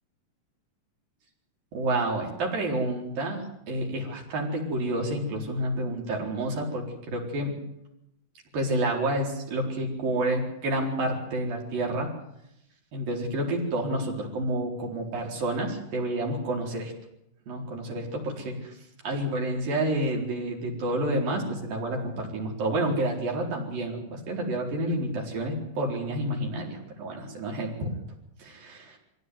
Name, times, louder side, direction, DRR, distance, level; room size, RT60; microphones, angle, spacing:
voice 1, 1.7-7.5 8.5-12.1 12.9-16.9 17.5-18.7 19.0-28.0 28.4-29.0, right 1 dB, 85° right, 0 dB, 6.1 m, -29 dB
23.5 x 16.5 x 9.5 m, 0.83 s
omnidirectional pair, 4.0 m